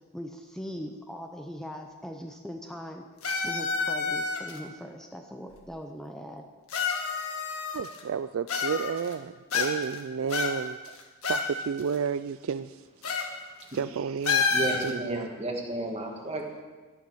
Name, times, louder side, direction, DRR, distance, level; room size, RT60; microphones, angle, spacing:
voice 1, 0.1-3.0 3.4-6.5, equal, ahead, 3 dB, 0.7 m, -40 dB
sound 1, 3.2-4.6 5.5-5.6 6.7-8.0 8.5-9.1 9.5-10.0 10.3-11.5 11.8-11.9 13.0-13.3 13.6-13.8 14.2-14.9, left 5 dB, 70° left, 1.7 m, -28 dB
voice 2, 7.7-13.3 13.7-14.6 14.8-15.3, right 6 dB, 60° right, 13 dB, 0.3 m, -32 dB
voice 3, 14.5-16.6, right 1 dB, 30° right, 1 dB, 2.0 m, -33 dB
12.5 x 11.0 x 6.2 m, 1.3 s
head